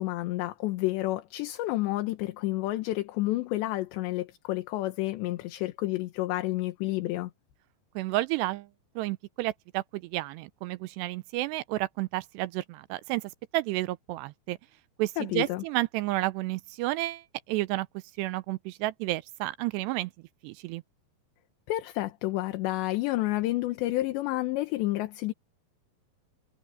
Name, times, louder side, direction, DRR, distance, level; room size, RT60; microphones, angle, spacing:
voice 1, 0.0-7.3 15.2-15.6 21.7-25.3, left 17 dB, 80° left, 3.2 m, -30 dB
voice 2, 8.0-8.7 9.0-14.6 15.0-17.9 18.2-20.1 20.4-20.8, right 18 dB, 80° right, 2.6 m, -31 dB
omnidirectional pair, 5.2 m